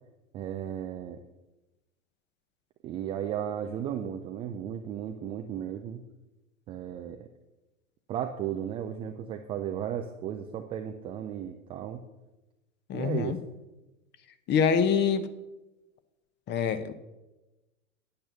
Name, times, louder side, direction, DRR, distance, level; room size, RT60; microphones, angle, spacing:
voice 1, 0.3-1.2 2.8-6.0 6.7-7.3 8.1-12.0 12.9-13.4, right 9 dB, 15° right, 6 dB, 0.3 m, -35 dB
voice 2, 12.9-13.4 14.5-15.3 16.5-16.9, left 6 dB, 25° left, 12 dB, 0.9 m, -25 dB
8.9 x 8.8 x 6.7 m, 1.0 s
hypercardioid pair, 105°, 40 cm